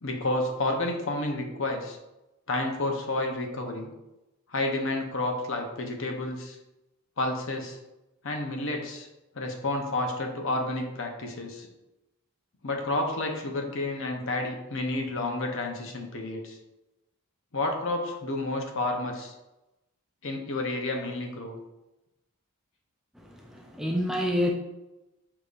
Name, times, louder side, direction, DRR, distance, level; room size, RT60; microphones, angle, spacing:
voice 1, 0.0-2.0 2.5-3.9 4.5-6.6 7.2-7.8 8.2-9.1 9.3-11.7 12.6-16.6 17.5-19.3 20.2-21.5, left 2 dB, 60° left, 2 dB, 0.8 m, -30 dB
voice 2, 23.2-24.5, left 1 dB, ahead, 0 dB, 0.3 m, -28 dB
6.7 x 2.9 x 2.5 m, 0.97 s
head